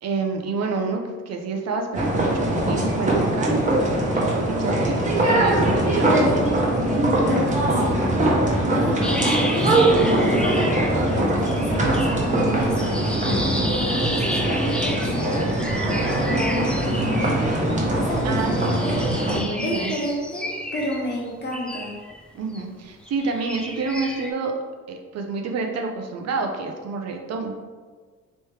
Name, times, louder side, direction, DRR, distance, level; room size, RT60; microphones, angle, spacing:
voice 1, 0.0-3.7 4.1-6.5 18.2-18.8 19.3-19.9 22.3-24.5 24.9-27.6, right 4 dB, 60° right, 3 dB, 0.6 m, -28 dB
sound 1, 1.9-19.4, right 1 dB, 25° right, 1.1 m, -21 dB
voice 2, 7.2-8.0 8.7-9.7 10.2-12.8 13.7-15.5 16.1-17.3 17.9-19.0 19.6-21.9, equal, 35° left, -2 dB, 1.2 m, -30 dB
sound 2, 9.0-11.2 11.5-17.8 18.2-22.6 23.0-24.3, equal, 5° left, 0.4 m, -32 dB
3.2 x 3.1 x 4.6 m, 1.5 s
cardioid pair, 90°, 30 cm